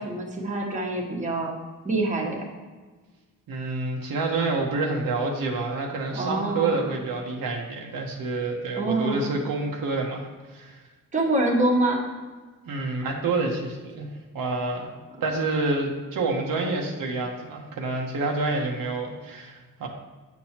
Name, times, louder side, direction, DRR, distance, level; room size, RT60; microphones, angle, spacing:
voice 1, 0.0-1.5 1.8-2.4 6.1-6.8 8.8-9.3 11.1-12.0, right 2 dB, 20° right, -1 dB, 1.2 m, -25 dB
voice 2, 3.5-10.3 10.5-10.8 12.7-14.9 15.2-19.9, right 3 dB, 85° right, 0 dB, 1.1 m, -28 dB
8.5 x 6.1 x 2.9 m, 1.3 s
cardioid pair, 120°, 33 cm